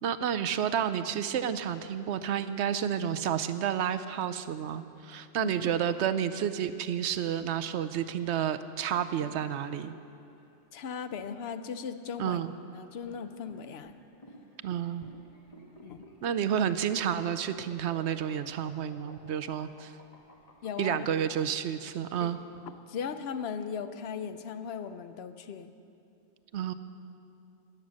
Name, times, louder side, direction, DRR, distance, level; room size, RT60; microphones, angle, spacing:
voice 1, 0.0-9.9 12.2-12.5 14.6-15.0 16.2-19.9 20.8-22.4 26.5-26.7, right 9 dB, 75° right, 11 dB, 0.9 m, -30 dB
voice 2, 5.4-5.7 10.7-12.4 12.7-13.9 15.8-16.0 20.6-21.0 22.2-22.3 22.9-25.7, left 6 dB, 65° left, 10 dB, 0.9 m, -38 dB
sound 1, 8.8-21.2, equal, 30° left, 1.5 m, -54 dB
15.0 x 10.5 x 6.3 m, 2.6 s
omnidirectional pair, 1.2 m